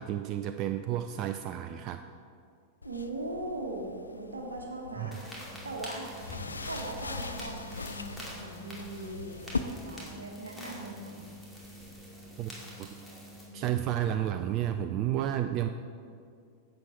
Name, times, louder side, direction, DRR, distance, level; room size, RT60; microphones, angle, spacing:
voice 1, 0.0-2.0 5.0-5.1 12.4-12.5 12.8-12.9 13.5-15.7, right 11 dB, 35° right, 8 dB, 0.3 m, -31 dB
sound 1, 2.8-9.6, left 4 dB, 80° left, 0.4 m, -41 dB
voice 2, 2.8-5.2 5.6-6.1 6.7-11.3, right 2 dB, 75° right, 2 dB, 1.2 m, -39 dB
sound 2, 5.1-13.4, equal, 5° left, 2.5 m, -45 dB
10.5 x 7.7 x 4.1 m, 2.3 s
figure-of-eight pair, 90°, 0 cm